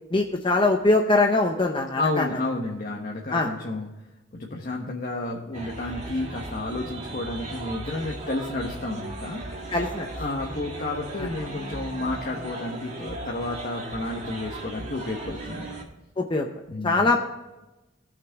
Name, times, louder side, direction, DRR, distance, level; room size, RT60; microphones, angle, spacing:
voice 1, 0.1-2.2 3.3-3.5 9.7-10.1 11.2-11.3 16.2-16.5 16.8-17.2, left 2 dB, 25° left, 3 dB, 0.7 m, -22 dB
voice 2, 2.0-3.9 4.3-9.4 10.2-15.8 16.7-17.1, left 2 dB, 45° left, -1 dB, 1.2 m, -31 dB
sound 1, 5.5-15.8, right 2 dB, 35° right, 1.8 m, -37 dB
17.5 x 6.1 x 3.6 m, 1.1 s
head